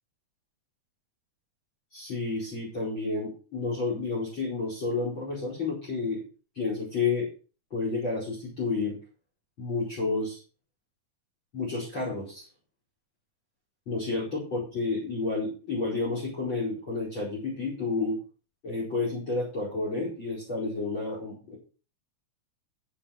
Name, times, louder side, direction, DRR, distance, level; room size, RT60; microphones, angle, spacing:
voice 1, 1.9-6.2 6.6-7.3 7.7-9.0 9.6-10.4 11.5-12.5 13.9-18.2 18.6-21.6, left 3 dB, 40° left, -1 dB, 5.5 m, -30 dB
14.5 x 6.0 x 5.0 m, 0.35 s
omnidirectional pair, 3.5 m